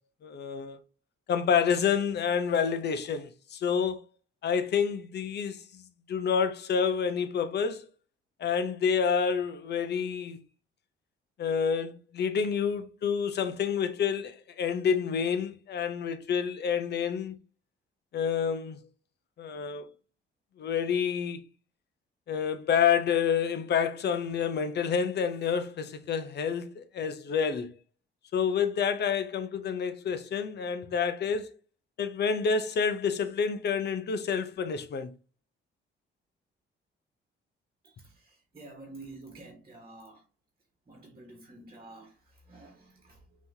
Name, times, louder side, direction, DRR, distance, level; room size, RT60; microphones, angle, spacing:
voice 1, 0.2-0.8 1.3-4.0 4.4-5.8 6.1-7.8 8.4-10.4 11.4-17.4 18.1-18.8 19.4-19.9 20.6-21.4 22.3-27.7 28.3-31.5 32.0-35.1, left 7 dB, 60° left, 0.7 m, -28 dB
voice 2, 37.8-40.2 40.9-43.2, right 2 dB, 30° right, 1.4 m, -49 dB
5.4 x 3.1 x 2.7 m
cardioid pair, 90°, 20 cm